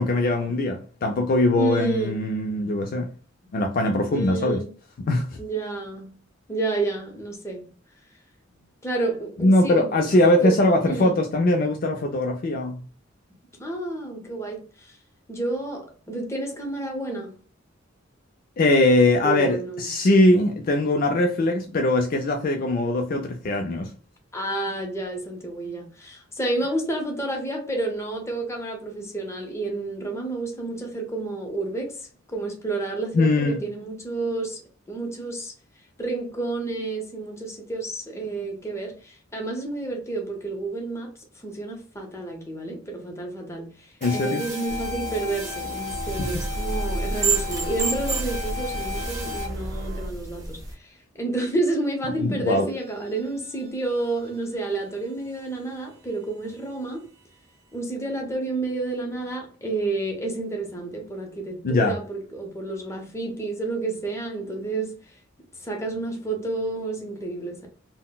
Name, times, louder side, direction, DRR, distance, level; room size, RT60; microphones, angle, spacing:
voice 1, 0.0-3.1 3.5-4.6 5.1-5.3 9.4-12.9 18.6-23.9 33.1-33.6 44.0-44.4 46.2-46.3 52.2-52.7 61.6-62.0, left 1 dB, 45° left, 0.4 m, -21 dB
voice 2, 1.6-2.2 4.1-4.7 5.4-6.1 6.5-7.7 8.8-10.1 10.4-10.6 10.8-11.1 13.6-14.9 15.3-17.4 19.2-19.9 21.6-21.7 24.3-32.0 32.3-34.6 34.9-35.5 36.0-41.1 41.4-57.1 57.7-64.9 65.6-67.7, right 2 dB, 15° left, 0.7 m, -30 dB
sound 1, 44.0-49.5 52.5-54.7, left 4 dB, 40° right, 1.5 m, -35 dB
sound 2, 44.7-50.1, right 2 dB, 75° right, 0.6 m, -33 dB
sound 3, 45.9-50.7, right 4 dB, 20° right, 0.7 m, -31 dB
3.8 x 2.1 x 2.2 m
head